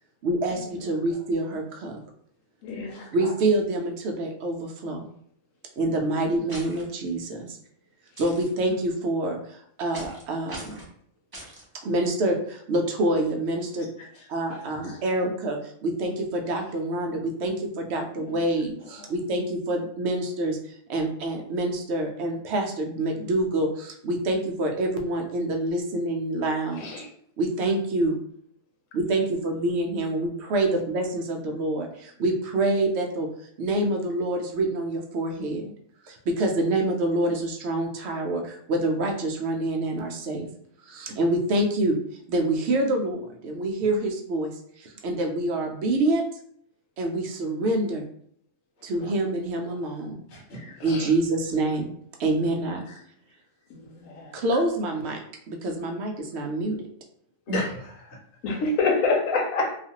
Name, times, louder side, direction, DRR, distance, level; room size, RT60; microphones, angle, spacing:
voice 1, 0.2-1.9 3.1-5.1 5.8-7.6 8.2-10.8 11.8-13.9 14.3-20.6 20.9-26.9 27.4-28.2 28.9-33.3 33.6-35.7 36.0-40.5 40.9-42.0 42.3-46.2 47.0-48.0 48.8-50.1 50.8-51.9 52.2-52.8 54.3-56.8, right 2 dB, 65° right, 2 dB, 0.8 m, -26 dB
voice 2, 2.6-3.3 18.2-18.4 26.7-27.1 49.6-49.8 50.8-51.1 53.7-54.4 58.4-59.7, left 3 dB, 85° left, 2 dB, 1.1 m, -28 dB
sound 1, 6.5-6.8 8.2-8.5 9.9-10.2 10.5-10.9 11.3-11.6, right 1 dB, 30° right, 0.4 m, -41 dB
voice 3, 14.5-15.0 49.0-49.1 50.3-50.7 52.9-53.0 57.5-58.2, left 1 dB, 60° left, -3 dB, 1.1 m, -34 dB
2.4 x 2.4 x 2.8 m, 0.64 s
omnidirectional pair, 1.4 m